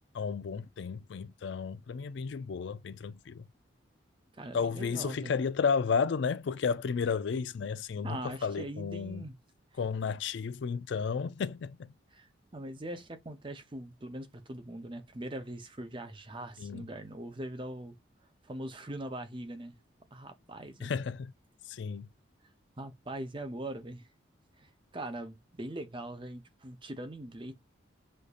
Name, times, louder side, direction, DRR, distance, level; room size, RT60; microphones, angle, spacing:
voice 1, 0.1-3.4 4.5-9.2 9.8-11.9 16.6-16.9 20.8-21.3 21.7-22.1, left 5 dB, 60° left, 0.4 m, -32 dB
voice 2, 4.3-5.3 8.0-9.4 12.1-12.3 12.5-17.9 18.4-19.8 20.1-20.9 22.8-24.1 24.6-27.5, right 1 dB, 25° right, 0.7 m, -41 dB
6.4 x 2.7 x 2.4 m
head